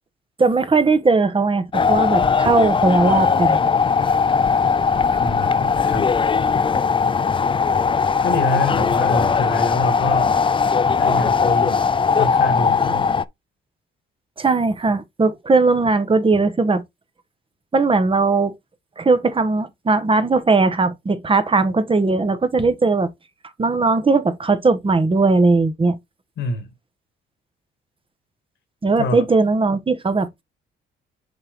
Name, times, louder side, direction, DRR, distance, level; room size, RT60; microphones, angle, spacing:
voice 1, 0.4-3.6 14.4-16.8 17.7-18.5 19.0-23.1 23.6-26.0 28.8-30.4, right 3 dB, 25° right, 1.3 m, -18 dB
sound 1, 1.7-13.2, left 5 dB, 25° left, 0.5 m, -19 dB
voice 2, 5.2-6.2 8.2-10.3 11.0-11.8 12.2-13.2 26.4-26.7 29.0-29.2, left 2 dB, 70° left, 2.1 m, -26 dB
6.6 x 4.5 x 3.7 m
cardioid pair, 90°, 20 cm